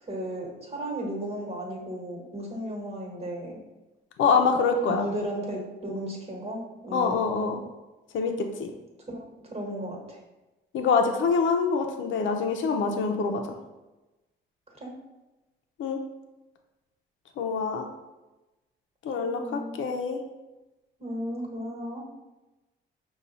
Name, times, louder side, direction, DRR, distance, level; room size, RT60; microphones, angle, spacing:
voice 1, 0.1-3.6 4.8-7.5 9.1-10.2 14.8-15.0 19.2-19.8 21.0-22.0, right 1 dB, 30° right, -1 dB, 1.3 m, -35 dB
voice 2, 4.2-5.1 6.9-7.6 8.1-8.7 10.7-13.4 15.8-16.0 17.4-17.9 19.0-20.2, left 5 dB, 75° left, 4 dB, 0.6 m, -25 dB
5.4 x 2.3 x 4.1 m, 1.1 s
cardioid pair, 90°, 20 cm